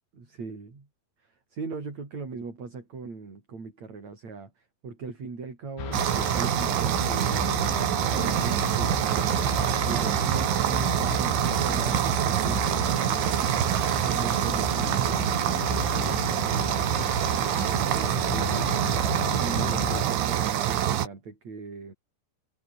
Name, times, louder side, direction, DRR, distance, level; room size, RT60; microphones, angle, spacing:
voice 1, 0.1-0.9 1.2-7.8 8.1-9.3 9.8-13.3 14.0-18.7 19.4-21.9, right 4 dB, 40° right, 6.6 m, -40 dB
sound 1, 5.8-20.0, left 8 dB, 80° left, 5.6 m, -35 dB
sound 2, 5.9-21.1, right 11 dB, 90° right, 4.7 m, -25 dB
omnidirectional pair, 5.2 m